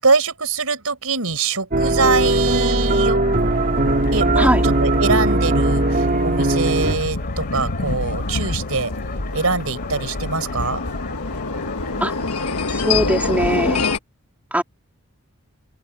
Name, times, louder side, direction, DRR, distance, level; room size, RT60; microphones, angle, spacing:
voice 1, 0.0-3.2 4.1-8.9 9.3-10.8, right 4 dB, 75° right, 5.0 m, -23 dB
sound 1, 1.7-7.0, right 2 dB, 45° right, 2.1 m, -19 dB
sound 2, 1.8-13.3, left 4 dB, 45° left, 3.2 m, -36 dB
sound 3, 3.2-14.0, left 3 dB, 80° left, 1.4 m, -27 dB
voice 2, 12.7-13.8 14.5-14.6, right 1 dB, 5° right, 2.9 m, -20 dB
open air
head